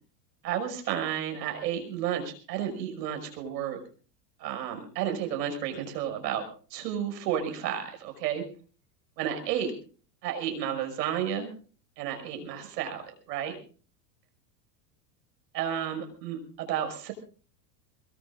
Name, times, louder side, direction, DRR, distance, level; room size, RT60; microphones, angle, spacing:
voice 1, 0.4-3.8 4.4-6.4 6.7-8.4 9.2-9.7 10.2-11.5 12.0-13.0 13.3-13.6 15.5-17.1, right 9 dB, 80° right, 6 dB, 6.0 m, -32 dB
23.0 x 22.5 x 2.5 m, 0.39 s
supercardioid pair, 155°, 47 cm